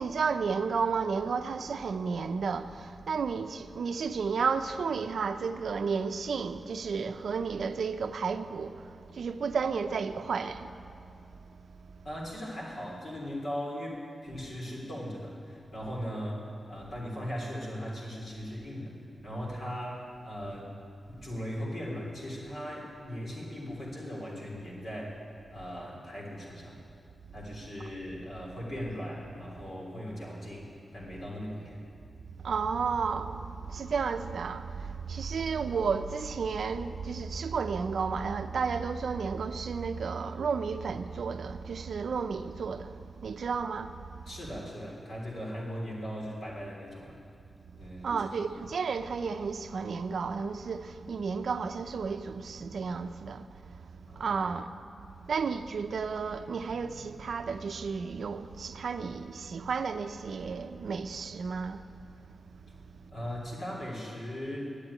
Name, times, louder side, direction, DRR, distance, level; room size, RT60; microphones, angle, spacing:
voice 1, 0.0-10.7 32.4-44.0 48.0-54.7 55.3-61.9, right 5 dB, 75° right, 0.5 m, -32 dB
voice 2, 12.0-19.0 19.2-20.7 21.1-25.2 25.5-26.8 27.3-31.8 35.3-35.4 44.2-47.2 47.8-48.6 54.1-54.5 63.1-64.7, equal, 55° left, 3.3 m, -39 dB
11.0 x 8.5 x 9.6 m
wide cardioid pair, 170°, 0 cm